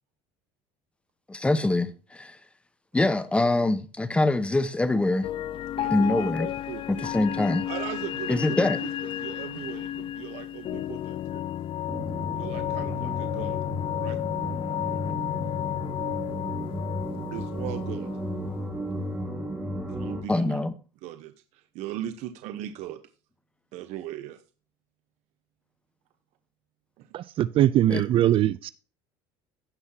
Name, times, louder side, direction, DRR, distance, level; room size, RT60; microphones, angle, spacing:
voice 1, 1.3-2.4 2.9-5.3 5.9-6.5 6.9-7.7 8.3-8.8 20.3-20.7 27.9-28.0, left 2 dB, 10° left, 1.0 m, -24 dB
sound 1, 5.2-18.6, left 11 dB, 45° left, 0.6 m, -32 dB
voice 2, 5.8-6.3 6.7-7.1 7.7-11.4 12.4-13.6 14.0-14.2 17.3-18.1 19.9-20.6 21.0-23.0 23.7-24.4 27.0-27.1, right 12 dB, 65° right, 1.0 m, -38 dB
sound 2, 11.9-20.2, equal, 10° right, 3.1 m, -34 dB
voice 3, 27.1-28.7, right 12 dB, 45° right, 0.4 m, -22 dB
16.0 x 5.7 x 2.8 m
cardioid pair, 125°, 12 cm